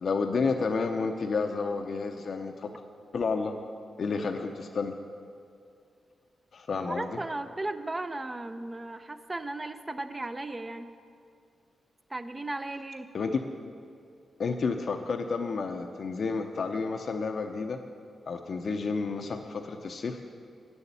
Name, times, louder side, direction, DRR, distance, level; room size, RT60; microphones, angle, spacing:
voice 1, 0.0-2.7 3.1-3.5 4.0-4.9 6.5-7.2 13.1-13.4 14.4-17.8 18.3-20.2, left 4 dB, 60° left, 4 dB, 0.6 m, -30 dB
voice 2, 6.9-10.9 12.1-13.1, right 2 dB, 25° right, 9 dB, 0.6 m, -36 dB
8.9 x 7.0 x 8.2 m, 2.4 s
cardioid pair, 70°, 0 cm